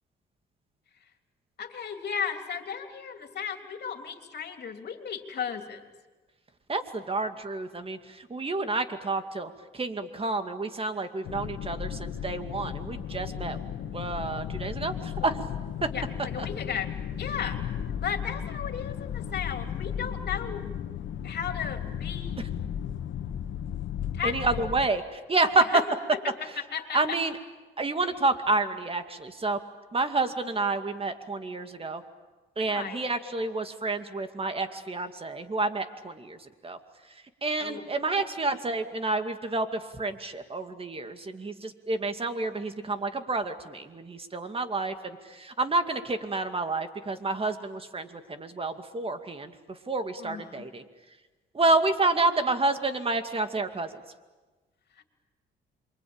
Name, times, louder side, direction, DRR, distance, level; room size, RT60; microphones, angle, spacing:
voice 1, 1.6-5.8 15.2-15.3 15.9-16.9 17.2-17.6 18.0-20.7 21.2-22.5 24.1-24.7 25.7-25.8 26.1-27.2 32.7-33.0 37.6-37.9 50.2-50.7, left 7 dB, 55° left, 5 dB, 3.3 m, -35 dB
voice 2, 6.7-13.6 13.9-15.4 15.8-15.9 16.4-16.5 24.2-25.6 26.9-27.3 27.8-29.6 29.9-32.0 32.6-36.4 36.6-36.8 37.4-50.8 51.5-53.9, right 3 dB, 30° right, 8 dB, 2.3 m, -29 dB
sound 1, 11.2-24.9, left 9 dB, 70° left, 1.6 m, -35 dB
28.0 x 24.0 x 8.9 m, 1.2 s
cardioid pair, 90°, 20 cm